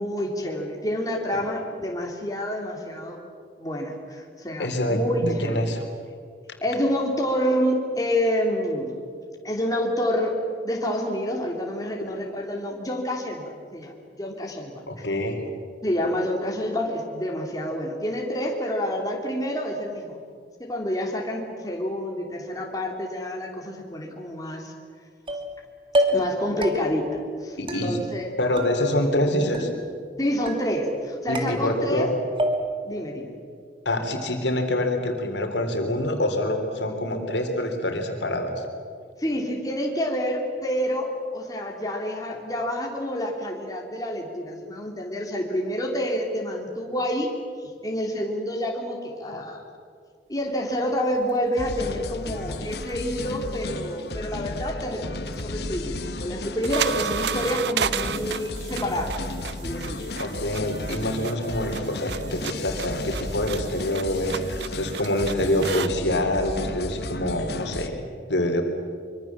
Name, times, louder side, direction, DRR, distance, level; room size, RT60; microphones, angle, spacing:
voice 1, 0.0-3.2 3.6-5.7 6.6-8.9 9.4-10.4 10.6-15.1 15.8-20.2 20.6-24.7 26.1-28.3 30.2-32.1 32.8-33.3 39.2-47.3 47.8-49.6 50.3-59.1 59.4-60.0, equal, 20° left, 0 dB, 3.1 m, -28 dB
voice 2, 4.6-5.8 14.9-15.5 27.6-28.0 28.4-29.7 31.3-32.2 33.8-38.7 60.2-68.0 68.3-68.6, left 1 dB, 85° left, 5 dB, 3.3 m, -26 dB
sound 1, 25.3-25.6 25.9-26.4 26.6-27.1 27.7-28.3 28.6-29.2 29.5-30.1 30.5-31.0 31.4-32.1 32.4-32.9, equal, 30° right, 2.4 m, -28 dB
sound 2, 51.6-67.9, left 2 dB, 65° left, 1.3 m, -34 dB
sound 3, 52.6-54.0 55.2-65.9, right 7 dB, 70° right, 0.6 m, -34 dB
24.5 x 24.0 x 7.4 m, 2.2 s
head